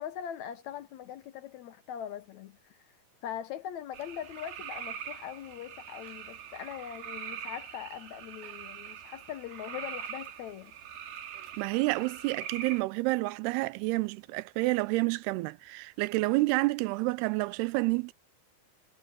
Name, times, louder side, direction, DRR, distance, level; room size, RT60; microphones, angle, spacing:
voice 1, 0.0-2.8 3.2-10.7, left 10 dB, 75° left, 1.7 m, -41 dB
sound 1, 3.9-12.8, right 8 dB, 70° right, 4.2 m, -43 dB
voice 2, 11.6-18.1, right 22 dB, 85° right, 2.6 m, -29 dB
omnidirectional pair, 4.5 m